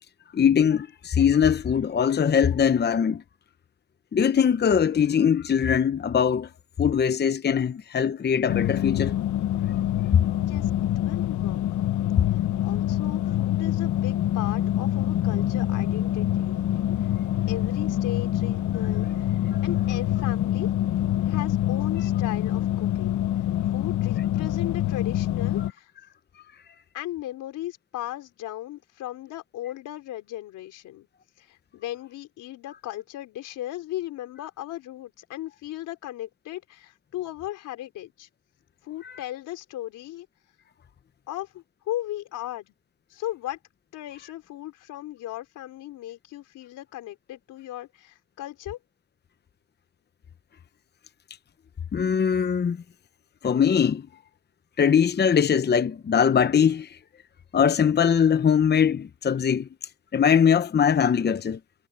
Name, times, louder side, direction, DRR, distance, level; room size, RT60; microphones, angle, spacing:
voice 1, 0.3-3.2 4.1-6.5 6.8-9.2 10.1-10.2 39.0-39.1 51.9-52.8 53.4-54.1 54.8-57.0 57.5-59.7 60.1-61.6, left 7 dB, 35° left, 0.9 m, -21 dB
sound 1, 8.5-25.7, left 12 dB, 70° left, 1.0 m, -25 dB
voice 2, 11.0-11.6 12.6-16.6 17.5-20.7 21.2-23.2 23.7-25.9 26.9-31.1 31.4-38.3 38.8-40.3 41.3-42.7 43.1-43.6 43.9-48.8, left 14 dB, 90° left, 4.1 m, -37 dB
cardioid pair, 90°, 30 cm